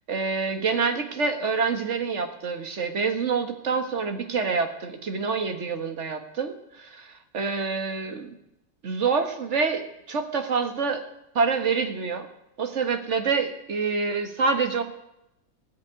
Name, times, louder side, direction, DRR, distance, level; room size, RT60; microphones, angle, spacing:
voice 1, 0.1-8.3 8.8-11.0 11.3-12.3 12.6-14.8, right 5 dB, 40° right, 7 dB, 1.6 m, -27 dB
19.0 x 6.7 x 9.4 m, 0.85 s
omnidirectional pair, 2.1 m